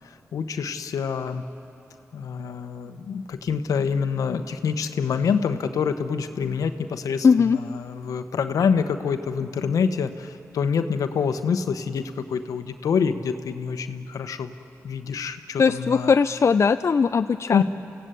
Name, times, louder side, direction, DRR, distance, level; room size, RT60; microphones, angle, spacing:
voice 1, 0.3-1.4 2.1-14.5 14.8-16.1 17.5-17.6, left 6 dB, 80° left, 9 dB, 1.1 m, -26 dB
voice 2, 7.2-7.6 15.6-17.6, left 5 dB, 55° left, 10 dB, 0.5 m, -19 dB
29.0 x 16.5 x 8.3 m, 2.8 s
supercardioid pair, 45°, 6 cm